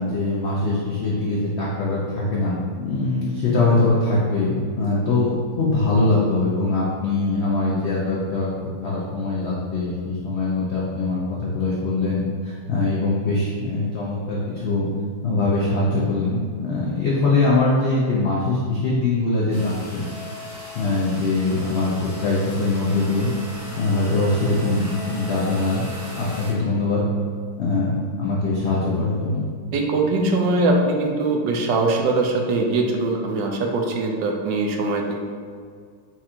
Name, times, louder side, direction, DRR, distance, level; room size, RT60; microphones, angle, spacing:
voice 1, 0.0-8.5 8.8-14.9 15.2-20.0 20.7-23.3 23.8-25.8 26.2-27.0 27.6-29.5, left 2 dB, 70° left, -6 dB, 0.6 m, -22 dB
sound 1, 19.5-26.5, left 1 dB, 20° right, 0.4 m, -37 dB
voice 2, 29.7-35.3, right 2 dB, 80° right, 2 dB, 1.2 m, -22 dB
4.5 x 2.4 x 4.3 m, 2.1 s
omnidirectional pair, 2.0 m